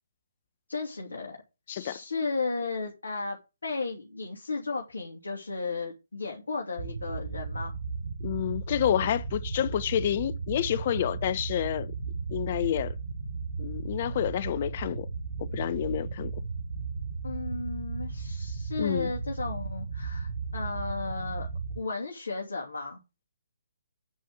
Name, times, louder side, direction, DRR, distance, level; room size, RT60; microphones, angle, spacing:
voice 1, 0.7-1.4 1.7-3.4 3.6-7.7 17.2-21.5 21.7-23.0, left 3 dB, 70° left, 3.1 m, -34 dB
voice 2, 1.7-2.0 8.2-11.9 12.3-12.9 13.6-15.1 15.4-16.3 18.8-19.1, left 10 dB, 40° left, 1.0 m, -29 dB
sound 1, 6.8-21.8, right 4 dB, 70° right, 4.4 m, -35 dB
9.5 x 5.6 x 7.9 m
figure-of-eight pair, 135°, 0 cm